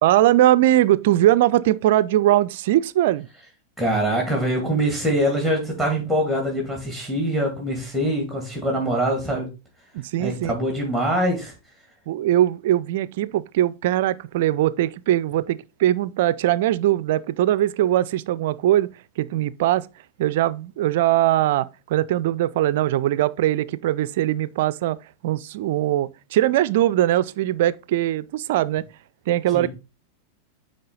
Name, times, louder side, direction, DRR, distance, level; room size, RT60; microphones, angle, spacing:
voice 1, 0.0-3.3 9.9-10.5 12.1-18.9 19.2-19.9 20.2-25.0 25.2-28.9 29.3-29.7, right 13 dB, 55° right, 0.4 m, -21 dB
voice 2, 3.8-9.5 10.2-11.5 29.5-29.7, right 1 dB, 5° left, 2.1 m, -23 dB
9.4 x 3.4 x 3.8 m
figure-of-eight pair, 90°, 0 cm